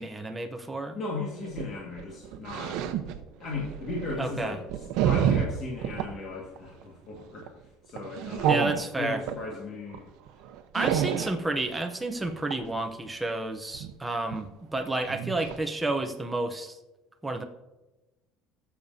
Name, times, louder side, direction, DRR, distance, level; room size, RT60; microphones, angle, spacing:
voice 1, 0.0-1.0 4.2-4.6 8.5-9.2 10.7-16.8 17.2-17.4, right 2 dB, 5° right, 3 dB, 0.7 m, -30 dB
voice 2, 0.9-2.8 3.4-10.1, left 3 dB, 35° left, -2 dB, 1.7 m, -37 dB
sound 1, 1.4-6.1 6.6-6.8 7.2-7.5 8.0-9.4 9.9-10.0 10.3-11.4 12.2-12.6 13.7-13.9 14.3-14.4 14.8-14.9 15.1-15.6 16.0-16.1, right 9 dB, 70° right, 0.8 m, -29 dB
20.0 x 7.1 x 2.7 m, 1.1 s
cardioid pair, 165°, 0 cm